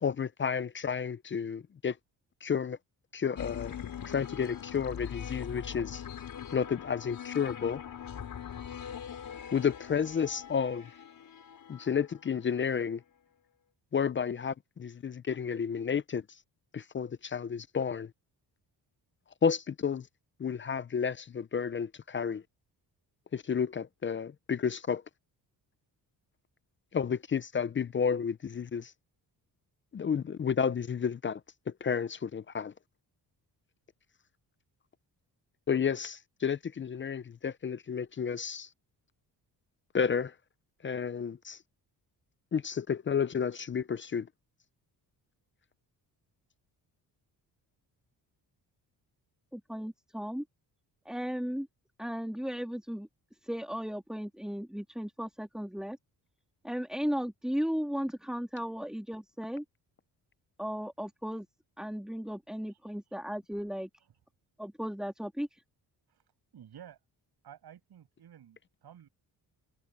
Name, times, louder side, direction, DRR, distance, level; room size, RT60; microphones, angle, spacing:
voice 1, 0.0-2.0 2.4-2.8 3.1-3.7 4.1-6.0 6.5-7.8 9.5-10.9 11.7-13.0 13.9-16.2 16.7-18.1 19.4-20.1 20.4-22.4 23.3-25.0 26.9-28.9 29.9-31.4 31.8-32.7 35.7-38.7 39.9-40.3 40.8-41.6 42.5-44.3, left 7 dB, 30° left, 0.5 m, -31 dB
sound 1, 3.4-12.4, left 8 dB, 55° left, 4.7 m, -42 dB
voice 2, 49.5-50.4 51.0-51.7 52.0-53.1 53.4-56.0 56.6-59.6 60.6-61.5 61.8-63.9 64.6-65.6, equal, ahead, 3.2 m, -35 dB
voice 3, 66.5-67.0 67.4-69.1, right 10 dB, 70° right, 6.8 m, -52 dB
cardioid pair, 120°, 40 cm